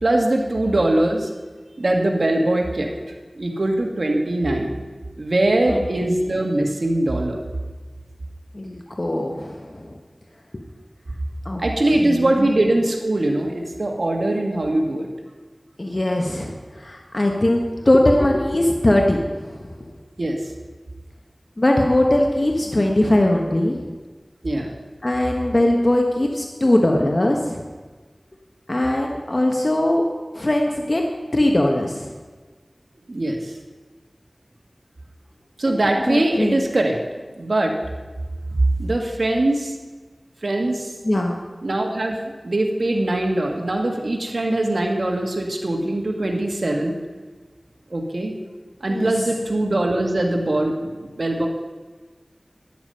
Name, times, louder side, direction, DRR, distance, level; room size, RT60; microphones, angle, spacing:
voice 1, 0.0-1.3 1.8-2.9 3.3-4.8 5.2-7.4 11.6-15.1 20.2-20.4 24.4-24.7 33.1-33.5 35.6-37.0 37.4-37.7 38.8-39.8 40.4-40.9 41.6-42.2 42.4-47.0 47.9-48.3 48.8-51.5, right 1 dB, 75° right, 1 dB, 1.9 m, -21 dB
voice 2, 5.7-6.2 8.5-9.9 10.5-10.6 11.4-11.6 12.0-12.5 15.8-19.7 21.6-23.9 25.0-27.6 28.7-30.0 30.3-32.1 35.9-36.6 41.0-41.4 48.9-49.1, left 1 dB, 45° left, 1 dB, 1.2 m, -20 dB
12.5 x 9.5 x 5.6 m, 1.4 s
wide cardioid pair, 45°, 0 cm